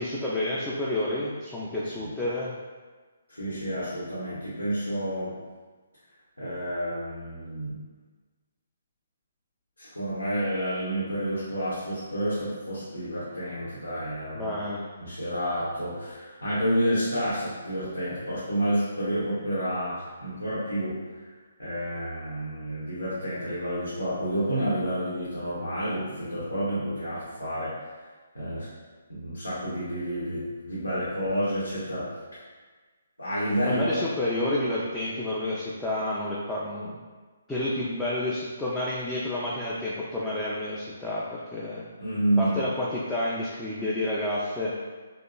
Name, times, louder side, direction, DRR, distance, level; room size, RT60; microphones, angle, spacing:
voice 1, 0.0-2.5 14.3-14.9 33.7-37.0 37.5-41.8 42.4-44.7, left 1 dB, 5° left, -9 dB, 0.3 m, -30 dB
voice 2, 1.8-2.1 3.3-5.3 6.4-7.8 9.8-14.5 15.0-21.3 21.6-27.7 28.3-28.7 29.1-32.1 33.2-33.8 42.0-42.5, equal, 85° left, -9 dB, 0.8 m, -29 dB
2.7 x 2.3 x 2.3 m, 1.4 s
figure-of-eight pair, 135°, 0 cm